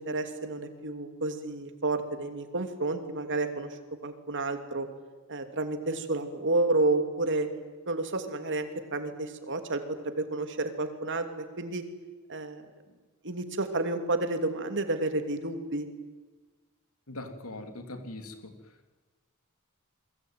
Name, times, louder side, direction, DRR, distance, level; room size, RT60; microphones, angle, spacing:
voice 1, 0.0-4.9 5.3-7.5 7.9-11.3 11.6-11.8 12.3-12.7 13.2-15.9, right 2 dB, 55° right, 7 dB, 2.9 m, -30 dB
voice 2, 17.1-18.5, left 2 dB, 75° left, 6 dB, 3.4 m, -41 dB
28.5 x 22.0 x 9.4 m, 1.3 s
head